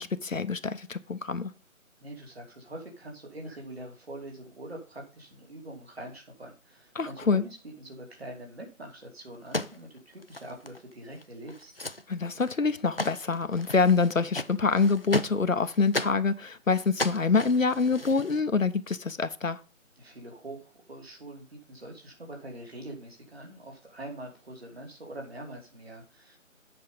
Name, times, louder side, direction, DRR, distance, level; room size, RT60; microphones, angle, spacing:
voice 1, 0.0-1.5 6.9-7.4 12.1-19.6, left 4 dB, 70° left, 11 dB, 0.9 m, -26 dB
voice 2, 2.0-11.7 20.0-26.4, right 1 dB, 45° right, 1 dB, 3.0 m, -44 dB
sound 1, 9.3-10.9 11.2-11.3 11.5-12.0 12.4-12.7 13.0-16.2 16.7-18.4, left 2 dB, 45° left, 0.5 m, -35 dB
7.9 x 5.5 x 5.1 m, 0.36 s
figure-of-eight pair, 160°, 41 cm